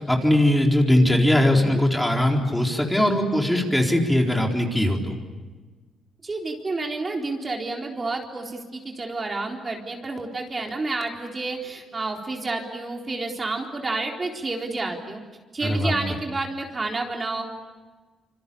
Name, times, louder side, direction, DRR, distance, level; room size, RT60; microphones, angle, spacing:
voice 1, 0.0-5.1 15.7-15.9, left 1 dB, 5° left, 1 dB, 4.2 m, -20 dB
voice 2, 6.2-15.2 15.5-17.4, right 3 dB, 30° right, 1 dB, 4.0 m, -30 dB
26.5 x 26.0 x 8.6 m, 1.3 s
cardioid pair, 90°, 0 cm